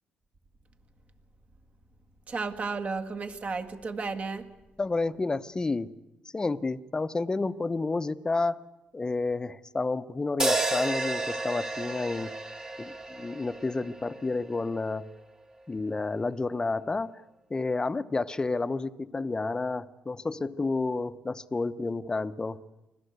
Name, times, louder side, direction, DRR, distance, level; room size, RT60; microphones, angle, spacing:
voice 1, 2.3-4.5, right 4 dB, 40° right, 6 dB, 1.9 m, -33 dB
voice 2, 4.8-5.9 6.3-8.6 8.9-12.3 12.8-15.0 15.7-17.1 17.5-22.6, left 3 dB, 25° left, 13 dB, 0.9 m, -30 dB
sound 1, 10.4-14.7, right 2 dB, 20° right, 1.8 m, -32 dB
25.0 x 17.5 x 8.1 m, 1.0 s
cardioid pair, 80°, 3 cm